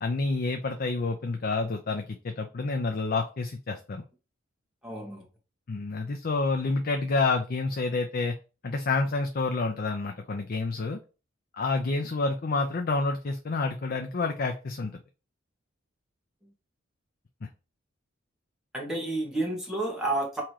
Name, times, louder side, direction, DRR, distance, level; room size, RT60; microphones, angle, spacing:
voice 1, 0.0-4.0 5.7-8.3 8.6-11.0 11.5-15.0 17.4-17.5, left 3 dB, 50° left, 4 dB, 0.5 m, -28 dB
voice 2, 4.8-5.2 18.7-20.4, right 2 dB, 5° right, -2 dB, 1.5 m, -30 dB
3.7 x 3.0 x 4.6 m, 0.32 s
head